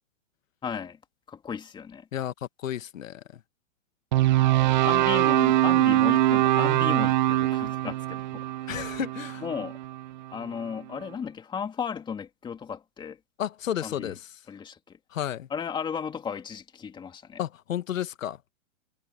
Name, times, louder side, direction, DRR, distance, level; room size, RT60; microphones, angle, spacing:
voice 1, 0.6-1.0 1.3-2.1 4.8-8.7 9.4-9.8 10.3-13.2 13.8-14.1 14.5-15.0 15.5-17.4, left 7 dB, 10° left, 2.4 m, -35 dB
voice 2, 2.1-3.4 8.7-9.4 13.4-14.3 15.1-15.5 17.4-18.4, left 10 dB, 80° left, 1.5 m, -32 dB
sound 1, 4.1-10.3, right 14 dB, 40° right, 0.4 m, -23 dB
hypercardioid pair, 150°, 39 cm